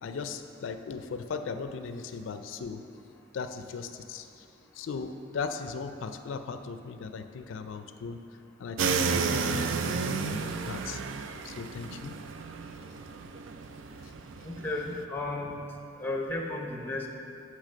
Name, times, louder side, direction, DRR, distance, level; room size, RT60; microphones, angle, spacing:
voice 1, 0.0-2.8 3.3-4.5 4.7-8.2 8.6-11.0 11.4-12.1 14.0-14.1, left 5 dB, 90° left, 8 dB, 0.4 m, -38 dB
sound 1, 8.8-15.0, right 5 dB, 80° right, 0.4 m, -32 dB
voice 2, 14.4-15.7 16.0-17.1, left 2 dB, 10° left, 1 dB, 0.8 m, -33 dB
10.0 x 3.4 x 6.5 m, 2.6 s
head